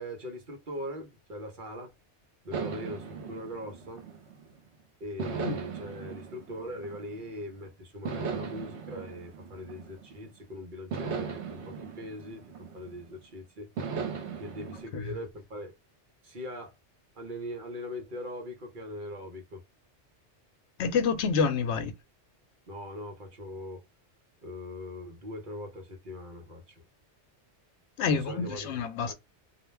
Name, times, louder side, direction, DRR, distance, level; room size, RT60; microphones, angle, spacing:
voice 1, 0.0-1.9 2.4-4.0 5.0-13.7 14.4-15.7 16.2-16.8 17.2-19.6 22.7-23.9 24.4-26.8 28.1-29.1, left 1 dB, 50° right, 0.9 m, -41 dB
sound 1, 2.5-4.6 5.2-7.4 8.0-10.3 10.9-13.2 13.8-14.8, right 6 dB, 75° right, 1.0 m, -38 dB
voice 2, 20.8-21.9 28.0-29.1, left 5 dB, 75° left, 0.9 m, -28 dB
2.4 x 2.2 x 3.1 m
omnidirectional pair, 1.2 m